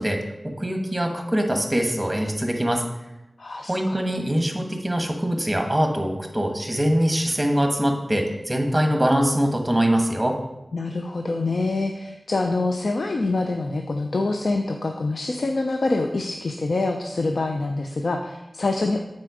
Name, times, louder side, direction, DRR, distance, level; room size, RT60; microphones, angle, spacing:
voice 1, 0.0-2.8 3.7-10.4, equal, 20° right, 3 dB, 1.4 m, -23 dB
voice 2, 3.4-4.0 10.7-19.0, left 2 dB, 70° left, 3 dB, 0.5 m, -25 dB
7.7 x 4.3 x 5.0 m, 0.93 s
cardioid pair, 45°, 0 cm